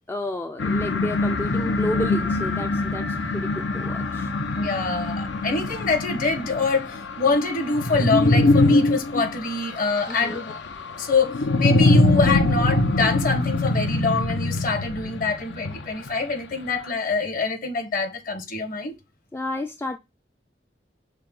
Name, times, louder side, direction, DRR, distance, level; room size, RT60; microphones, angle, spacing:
voice 1, 0.1-4.3 10.1-10.4 19.3-20.0, left 1 dB, 15° left, 0.3 m, -31 dB
sound 1, 0.6-16.1, left 2 dB, 85° left, 0.7 m, -23 dB
voice 2, 4.6-10.6 11.0-18.9, left 4 dB, 50° left, 1.2 m, -25 dB
6.4 x 2.2 x 3.7 m
head